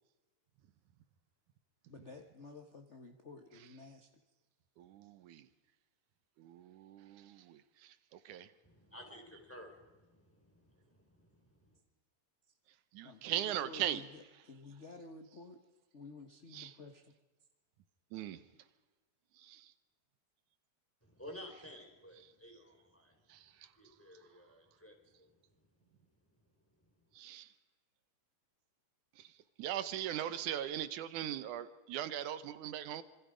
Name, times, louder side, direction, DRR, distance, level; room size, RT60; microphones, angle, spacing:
voice 1, 1.9-4.1 13.0-15.6 15.9-17.0, left 3 dB, 55° left, 0.8 m, -52 dB
voice 2, 4.8-5.5 6.4-8.5 12.9-14.0 16.5-16.8 18.1-18.4 19.4-19.7 23.3-23.7 27.1-27.5 29.2-33.0, right 11 dB, 80° right, 2.4 m, -40 dB
voice 3, 8.6-11.8 21.0-23.2 23.8-25.3 25.6-25.7, equal, 5° left, 4.2 m, -54 dB
26.5 x 24.5 x 5.1 m
omnidirectional pair, 3.5 m